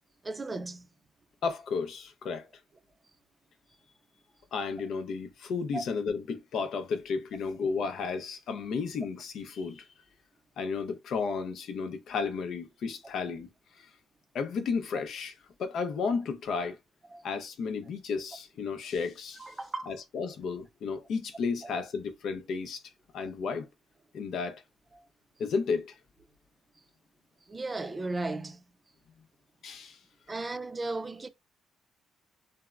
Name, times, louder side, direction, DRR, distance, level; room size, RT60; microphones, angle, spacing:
voice 1, 0.2-0.9 5.7-5.8 17.1-17.2 19.4-19.9 21.6-21.7 27.5-28.6 30.3-31.3, right 2 dB, 25° right, 0.4 m, -35 dB
voice 2, 1.4-2.5 4.5-9.8 10.6-13.5 14.3-15.3 15.6-16.8 17.2-19.5 19.9-22.8 23.1-23.7 24.1-24.6 25.4-26.0 29.6-30.0, left 5 dB, 70° left, 0.5 m, -33 dB
3.4 x 2.0 x 2.3 m
cardioid pair, 90°, 0 cm